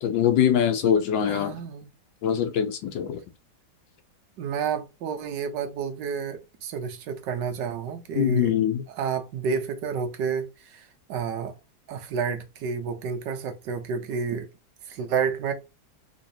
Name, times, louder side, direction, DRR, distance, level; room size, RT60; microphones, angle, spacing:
voice 1, 0.0-1.6 2.2-3.2 8.1-8.8, left 9 dB, 80° left, 1.5 m, -23 dB
voice 2, 1.3-1.9 4.4-8.5 8.9-11.6 11.9-14.5 14.9-15.5, right 6 dB, 70° right, 1.3 m, -30 dB
4.0 x 3.1 x 2.7 m
omnidirectional pair, 2.1 m